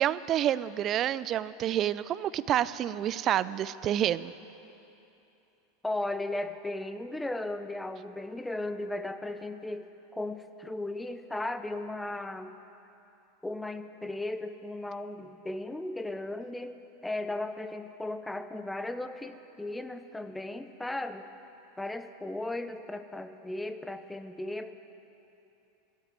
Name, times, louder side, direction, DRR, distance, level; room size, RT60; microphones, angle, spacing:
voice 1, 0.0-4.3, right 11 dB, 40° right, 17 dB, 0.4 m, -28 dB
voice 2, 5.8-9.9 10.1-12.5 13.4-16.8 17.0-21.3 21.8-24.7, left 2 dB, 5° left, 10 dB, 0.8 m, -36 dB
13.5 x 8.3 x 9.0 m, 2.9 s
hypercardioid pair, 95°, 0 cm